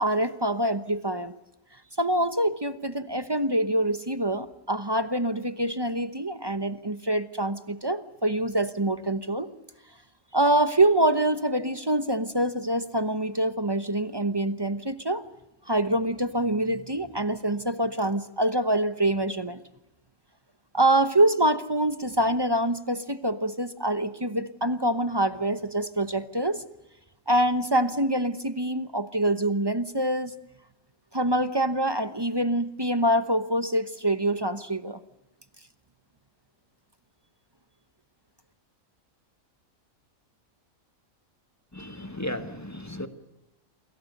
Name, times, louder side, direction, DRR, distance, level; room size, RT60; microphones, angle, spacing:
voice 1, 0.0-1.3 2.0-9.5 10.3-15.2 15.7-19.6 20.7-26.6 27.3-30.3 31.1-35.0, right 1 dB, 20° right, 12 dB, 0.9 m, -25 dB
voice 2, 41.7-43.1, left 1 dB, 10° left, 9 dB, 1.4 m, -35 dB
28.5 x 22.0 x 6.7 m, 0.91 s
omnidirectional pair, 1.5 m